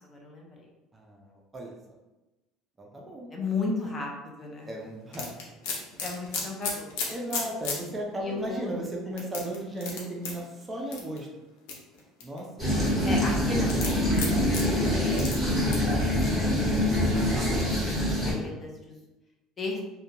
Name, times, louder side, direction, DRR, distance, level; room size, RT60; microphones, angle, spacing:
voice 1, 0.1-0.7 3.3-4.7 6.0-6.9 8.2-8.7 13.0-15.8 16.4-17.9 18.2-19.0 19.6-19.8, left 3 dB, 25° left, -1 dB, 0.6 m, -35 dB
voice 2, 0.9-1.7 2.8-3.3 4.7-5.3 7.1-11.3 12.2-12.5 18.1-18.6, right 1 dB, 20° right, -1 dB, 0.4 m, -36 dB
sound 1, 5.1-7.8 8.3-8.4 9.2-10.3 10.9-11.2 11.7-12.4 13.7-14.6 15.2-15.3 15.7-15.9, left 4 dB, 85° left, 0.6 m, -32 dB
sound 2, 12.6-18.3, left 1 dB, 5° right, 1.3 m, -25 dB
2.4 x 2.2 x 2.9 m, 1.0 s
cardioid pair, 120°, 0 cm